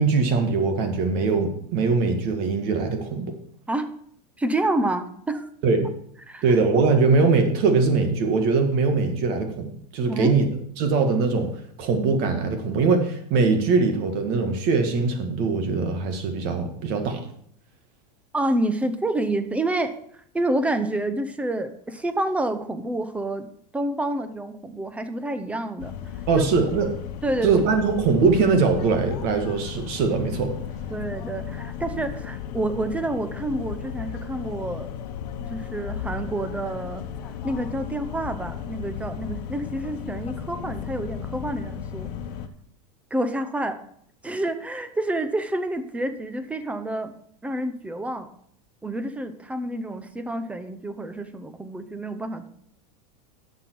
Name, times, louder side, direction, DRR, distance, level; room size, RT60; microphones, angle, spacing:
voice 1, 0.0-3.3 5.6-5.9 6.4-10.5 10.8-17.3 26.3-26.9 27.4-30.5, right 4 dB, 50° right, 6 dB, 1.9 m, -22 dB
voice 2, 4.4-5.5 6.3-6.4 10.1-10.4 18.3-26.7 27.2-27.7 30.9-34.9 35.5-37.0 37.4-42.1 43.1-43.8 44.2-47.1 47.4-48.3 48.8-52.5, right 1 dB, 5° right, 10 dB, 0.8 m, -28 dB
sound 1, 25.8-42.5, left 8 dB, 70° left, 1.0 m, -35 dB
11.0 x 7.2 x 4.7 m, 0.66 s
supercardioid pair, 140°, 21 cm